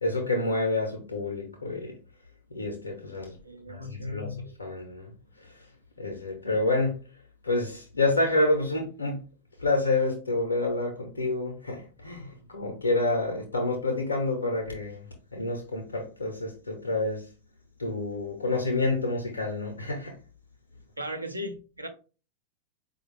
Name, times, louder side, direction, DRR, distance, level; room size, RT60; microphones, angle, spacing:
voice 1, 0.0-1.9 2.5-3.3 3.7-5.1 6.0-7.0 7.4-9.2 9.6-15.0 15.3-17.3 17.8-20.2, left 2 dB, 75° left, 0.7 m, -28 dB
voice 2, 3.4-4.4 21.0-21.9, equal, 85° right, 0.6 m, -37 dB
4.8 x 2.3 x 3.2 m
figure-of-eight pair, 90°, 0 cm